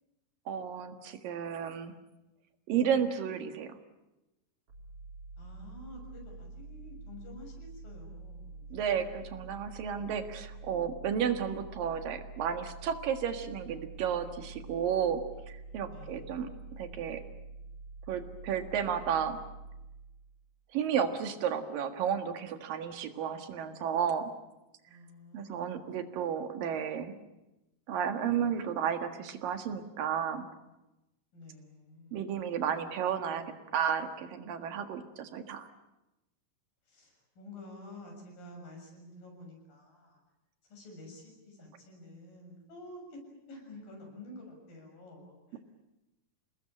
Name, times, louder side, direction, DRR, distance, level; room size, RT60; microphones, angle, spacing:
voice 1, 0.5-1.9 2.7-3.7 8.7-15.2 15.5-16.5 16.8-17.2 18.1-19.4 20.7-24.3 25.3-27.1 27.9-30.5 32.1-33.4 33.7-35.7, right 8 dB, 80° right, 7 dB, 3.5 m, -32 dB
sound 1, 4.7-20.5, right 3 dB, 45° right, 4.1 m, -47 dB
voice 2, 5.4-8.9 15.9-16.3 24.9-26.0 31.3-32.3 36.9-40.2 40.6-43.2 43.5-45.6, left 1 dB, 90° left, 1 dB, 8.7 m, -50 dB
28.5 x 19.5 x 8.9 m, 0.97 s
omnidirectional pair, 3.9 m